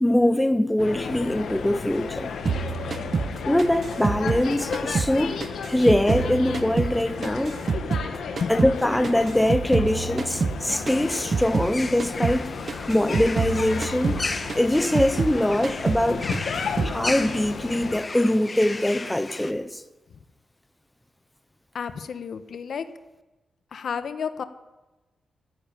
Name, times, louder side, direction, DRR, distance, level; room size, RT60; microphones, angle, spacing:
voice 1, 0.0-2.3 3.4-5.4 5.7-7.6 8.5-12.5 12.9-14.2 14.6-16.3 16.8-19.8, left 1 dB, 5° left, 0.9 m, -23 dB
sound 1, 0.8-18.0, left 5 dB, 80° left, 1.9 m, -33 dB
sound 2, 2.5-5.2 5.4-8.1 8.4-11.7 12.0-12.4 12.7-15.4 15.6-16.1 16.3-17.0, right 5 dB, 45° right, 0.7 m, -28 dB
sound 3, 10.9-19.5, left 3 dB, 30° left, 1.3 m, -35 dB
voice 2, 21.7-22.9 23.7-24.4, left 6 dB, 65° left, 1.2 m, -31 dB
14.0 x 10.0 x 9.3 m
cardioid pair, 100°, 0 cm